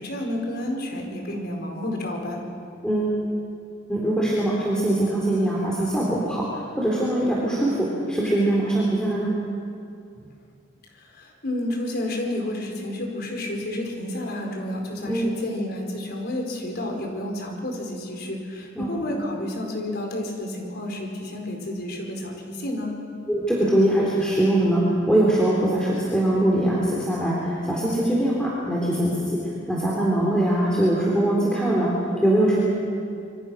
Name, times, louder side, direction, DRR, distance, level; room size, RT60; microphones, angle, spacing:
voice 1, 0.0-2.4 10.1-10.3 10.9-22.9, left 1 dB, 55° left, 2 dB, 4.8 m, -30 dB
voice 2, 2.8-3.2 3.9-9.3 15.1-15.3 18.8-19.1 23.3-32.6, right 1 dB, 5° left, -5 dB, 3.7 m, -22 dB
26.0 x 24.5 x 6.4 m, 2.4 s
head